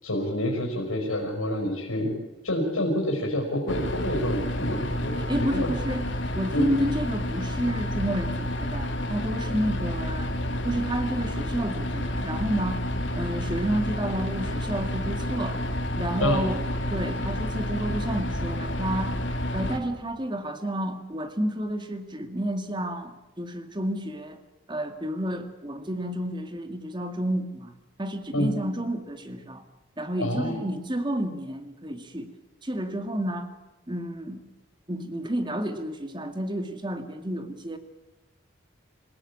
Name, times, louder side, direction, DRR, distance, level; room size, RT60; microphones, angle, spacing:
voice 1, 0.0-2.2 2.4-5.7 6.5-6.7 16.2-16.4 28.3-28.5 30.2-30.6, left 1 dB, 90° left, 0 dB, 5.3 m, -28 dB
sound 1, 3.7-19.8, left 1 dB, 60° left, 2.5 m, -30 dB
voice 2, 5.3-6.0 6.4-10.3 10.7-12.8 13.2-15.6 16.0-16.6 16.9-19.2 19.5-24.4 24.7-27.7 28.0-29.6 30.0-32.3 32.6-33.5 33.9-34.4 34.9-37.8, right 1 dB, 20° right, 8 dB, 2.0 m, -30 dB
27.0 x 17.5 x 8.7 m, 1.0 s
head